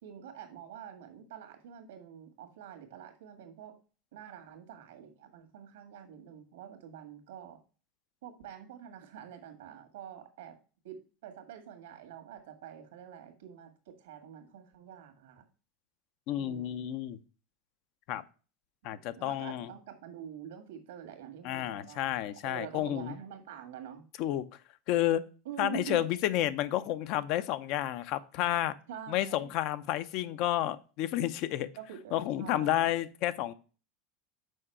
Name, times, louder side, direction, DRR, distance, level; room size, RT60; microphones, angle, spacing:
voice 1, 0.0-3.8 4.1-7.6 8.2-10.6 10.8-15.4 16.3-16.8 18.9-24.0 25.4-26.0 28.9-29.5 31.8-33.0, right 9 dB, 90° right, 6 dB, 1.8 m, -46 dB
voice 2, 16.3-17.2 18.1-18.2 18.8-19.7 21.4-23.1 24.2-24.4 24.9-25.2 25.6-28.7 29.1-31.7 32.1-33.5, left 13 dB, 55° left, 14 dB, 0.6 m, -31 dB
6.3 x 4.7 x 4.4 m, 0.35 s
supercardioid pair, 130°, 0 cm